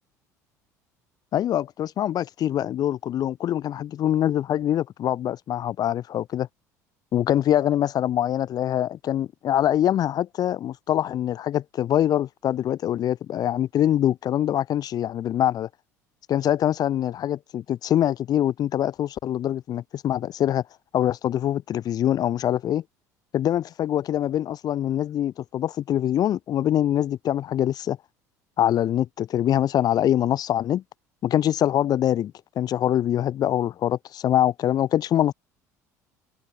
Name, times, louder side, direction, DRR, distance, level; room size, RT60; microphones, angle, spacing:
voice 1, 1.3-6.5 7.1-15.7 16.3-20.6 20.9-22.8 23.3-28.0 28.6-30.8 31.2-35.3, left 11 dB, 45° left, 0.8 m, -24 dB
hypercardioid pair, 65°, 9 cm